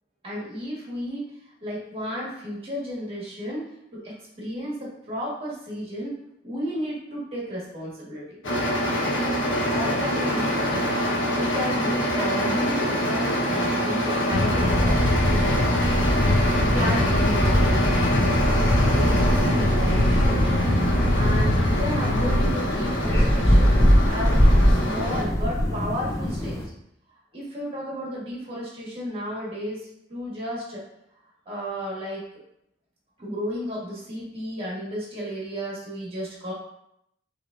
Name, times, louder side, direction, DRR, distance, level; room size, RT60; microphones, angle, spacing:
voice 1, 0.2-1.3 1.6-3.6 3.9-6.2 6.4-8.4 9.7-10.6 11.1-15.1 15.4-15.7 16.7-18.1 18.9-20.4 21.1-23.7 24.1-26.6 27.3-30.8 31.4-32.3 33.2-36.5, equal, 30° right, -5 dB, 1.5 m, -33 dB
sound 1, 8.4-25.2, equal, 80° left, 1.1 m, -25 dB
sound 2, 14.3-22.5, left 1 dB, 50° left, 0.7 m, -23 dB
sound 3, 16.1-26.7, equal, 15° left, 0.4 m, -23 dB
6.0 x 3.2 x 2.5 m, 0.78 s
head